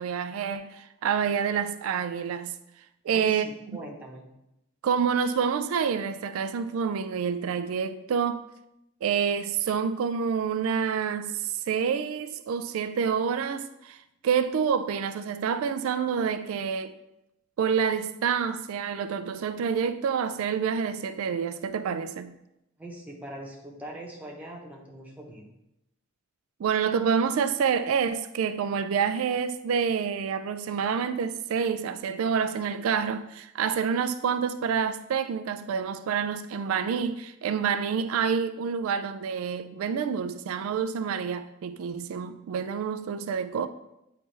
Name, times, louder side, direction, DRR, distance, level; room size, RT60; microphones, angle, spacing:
voice 1, 0.0-2.6 3.0-3.8 4.8-8.5 9.0-17.0 17.6-22.4 26.6-43.7, right 6 dB, 85° right, 0.3 m, -28 dB
voice 2, 3.1-4.3 22.8-25.5, right 1 dB, 10° right, 1.0 m, -42 dB
8.7 x 3.3 x 3.3 m
head